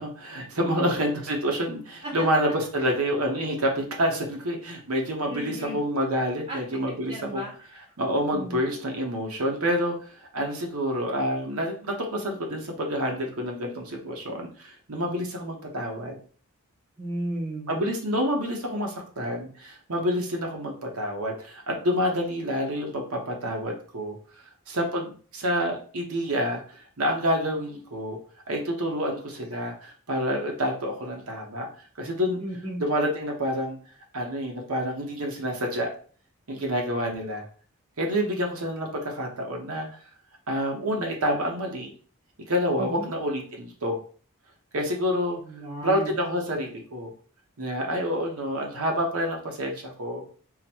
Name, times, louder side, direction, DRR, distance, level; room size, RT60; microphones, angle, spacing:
voice 1, 0.0-7.4 8.0-16.2 17.7-24.2 24.7-28.2 28.5-31.7 32.0-32.4 32.8-33.8 34.1-35.9 36.5-37.5 38.0-40.0 40.5-41.9 42.5-44.0 44.7-45.4 45.8-47.1 47.6-50.2, equal, 75° right, 1 dB, 0.9 m, -28 dB
voice 2, 0.6-1.0 2.0-2.2 2.8-2.9 5.3-5.8 6.5-7.8 8.3-8.6 17.0-17.8 32.4-32.8 42.8-43.1 45.4-46.1, right 1 dB, 30° right, -2 dB, 0.7 m, -35 dB
3.8 x 2.2 x 4.3 m, 0.43 s
head